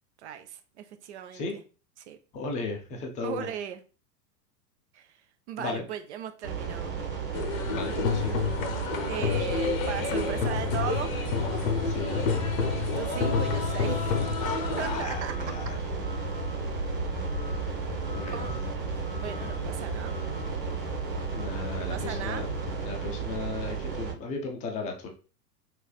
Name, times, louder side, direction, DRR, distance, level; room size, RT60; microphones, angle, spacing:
voice 1, 0.2-1.6 2.1-2.2 3.2-3.8 4.9-5.1 5.5-6.9 9.1-11.1 12.9-14.2 14.8-15.3 18.3-18.5 19.2-20.1 21.7-22.5, right 9 dB, 45° right, 0.4 m, -37 dB
voice 2, 2.3-3.5 5.6-5.8 7.7-8.4 9.2-9.5 11.9-12.3 14.7-15.8 18.1-18.5 21.3-22.5 22.8-25.1, left 4 dB, 15° left, 0.4 m, -35 dB
sound 1, 6.4-24.1, right 6 dB, 80° right, 1.6 m, -34 dB
sound 2, 7.3-15.1, left 5 dB, 55° left, 0.7 m, -29 dB
Truck, 9.5-22.8, left 4 dB, 90° left, 0.8 m, -38 dB
3.3 x 3.2 x 2.3 m
figure-of-eight pair, 95°, 49 cm